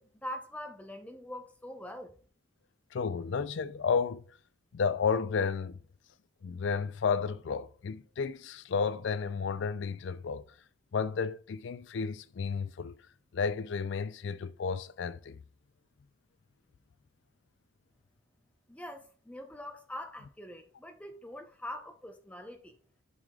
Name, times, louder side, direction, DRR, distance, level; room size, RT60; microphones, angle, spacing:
voice 1, 0.0-2.2 18.7-22.8, left 1 dB, 5° left, 0.7 m, -43 dB
voice 2, 2.9-4.2 4.7-5.8 6.4-10.5 10.9-12.9 13.3-15.4, left 5 dB, 65° left, 0.4 m, -32 dB
11.0 x 4.8 x 2.3 m
head